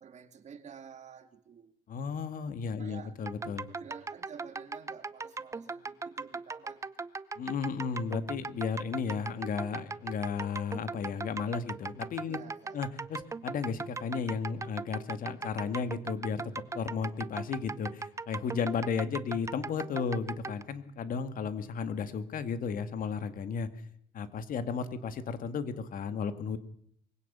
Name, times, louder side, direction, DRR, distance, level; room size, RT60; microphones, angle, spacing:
voice 1, 0.0-1.7 2.8-3.2 3.7-7.1 12.3-12.8, right 7 dB, 45° right, 2.1 m, -50 dB
voice 2, 1.9-3.7 7.4-12.4 12.7-23.7 24.1-26.6, left 6 dB, 55° left, 2.1 m, -34 dB
sound 1, 3.3-20.6, right 4 dB, 15° right, 0.8 m, -39 dB
22.5 x 16.5 x 6.9 m
cardioid pair, 110°, 17 cm